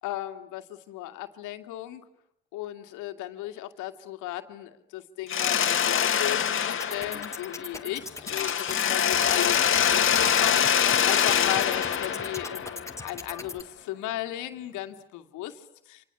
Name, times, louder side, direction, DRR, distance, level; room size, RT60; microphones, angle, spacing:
voice 1, 0.0-2.1 2.5-16.0, left 14 dB, 65° left, 7 dB, 2.3 m, -36 dB
Mechanisms, 5.3-7.9 8.3-13.1, left 8 dB, 40° left, 2.0 m, -24 dB
sound 1, 6.7-13.6, left 2 dB, 10° left, 2.1 m, -40 dB
29.5 x 26.5 x 7.1 m, 0.79 s
hypercardioid pair, 70°, 32 cm